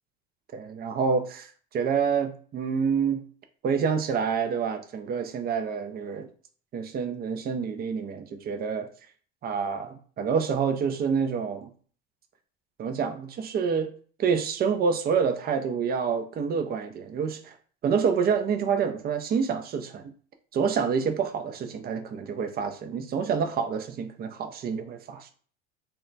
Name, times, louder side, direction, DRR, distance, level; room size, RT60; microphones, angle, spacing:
voice 1, 0.5-3.2 3.6-6.3 6.7-8.9 9.4-11.7 12.8-13.9 14.2-17.5 17.8-20.0 20.5-25.3, right 6 dB, 30° right, 7 dB, 0.5 m, -27 dB
2.2 x 2.1 x 3.8 m, 0.44 s
hypercardioid pair, 85°, 31 cm